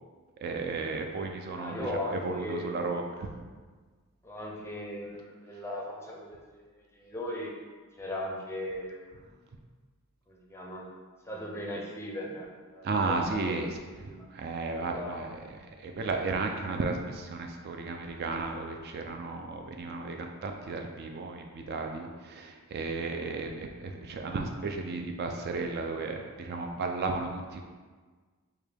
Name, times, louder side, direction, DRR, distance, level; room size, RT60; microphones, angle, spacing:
voice 1, 0.4-3.3 12.8-13.8 14.3-15.4 15.8-27.6, right 3 dB, 45° right, 3 dB, 0.3 m, -34 dB
voice 2, 1.5-2.7 4.2-6.4 6.8-7.5 8.0-9.4 10.3-10.9 11.3-14.3 14.8-15.3, left 1 dB, 10° left, -2 dB, 0.5 m, -38 dB
4.7 x 2.2 x 3.3 m, 1.4 s
head